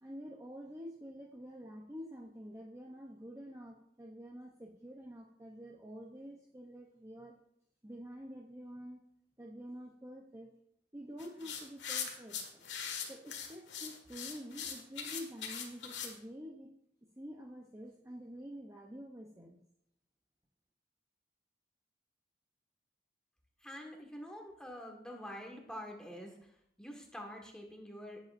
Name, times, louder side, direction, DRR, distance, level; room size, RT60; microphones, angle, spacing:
voice 1, 0.0-7.3 7.8-9.0 9.4-10.5 10.9-12.6 13.1-16.7 17.2-19.6, equal, 15° right, 0 dB, 0.7 m, -48 dB
sound 1, 11.2-16.1, left 7 dB, 85° left, 1.7 m, -41 dB
voice 2, 23.6-28.2, equal, 5° left, 1 dB, 1.5 m, -47 dB
17.5 x 7.8 x 2.6 m, 0.75 s
head